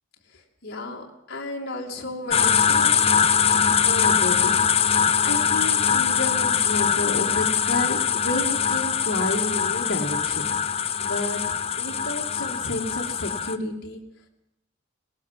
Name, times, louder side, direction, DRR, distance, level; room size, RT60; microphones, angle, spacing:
voice 1, 0.3-2.9 3.5-4.6 4.9-11.4 11.8-14.0, left 1 dB, 55° left, -1 dB, 2.6 m, -31 dB
sound 1, 2.3-13.6, left 7 dB, 30° left, 0.8 m, -22 dB
19.5 x 17.5 x 7.6 m, 0.83 s
head